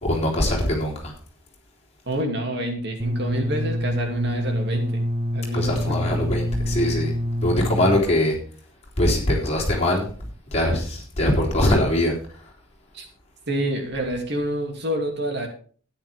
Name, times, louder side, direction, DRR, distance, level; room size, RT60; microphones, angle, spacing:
voice 1, 0.0-1.1 5.5-7.1 7.4-8.4 9.0-10.1 10.5-12.1, left 1 dB, 30° left, -2 dB, 3.6 m, -22 dB
voice 2, 2.1-5.1 5.3-6.0 12.9-13.1 13.5-15.5, right 1 dB, 55° right, 3 dB, 2.6 m, -28 dB
sound 1, 3.0-8.0, equal, 30° right, 1.2 m, -26 dB
13.0 x 10.0 x 3.5 m, 0.42 s
head